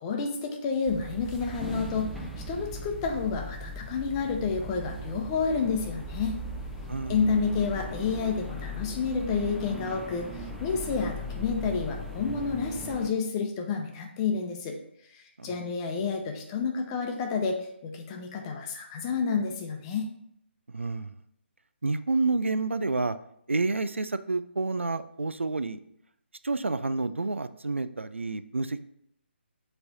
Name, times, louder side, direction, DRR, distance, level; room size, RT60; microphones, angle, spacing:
voice 1, 0.0-6.4 7.1-14.8 15.1-20.1, left 5 dB, 25° left, 2 dB, 0.9 m, -30 dB
sound 1, 0.9-13.1, equal, ahead, 0.6 m, -38 dB
voice 2, 6.9-7.2 15.4-15.5 20.7-21.1 21.8-23.2 23.5-25.8 26.4-28.8, right 3 dB, 90° right, 12 dB, 0.4 m, -29 dB
6.9 x 3.3 x 4.1 m, 0.73 s
figure-of-eight pair, 145°, 6 cm